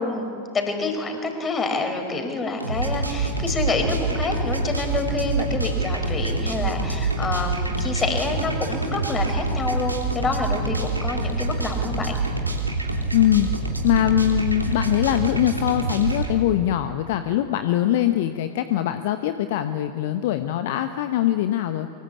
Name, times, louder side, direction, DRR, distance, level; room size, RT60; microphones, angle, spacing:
voice 1, 0.0-12.2, left 3 dB, 20° left, 5 dB, 5.1 m, -27 dB
sound 1, 2.6-16.3, right 3 dB, 85° right, 3.0 m, -26 dB
voice 2, 13.1-13.5 13.8-21.9, left 12 dB, 50° left, 9 dB, 1.0 m, -22 dB
24.0 x 21.5 x 8.7 m, 2.4 s
figure-of-eight pair, 90°, 0 cm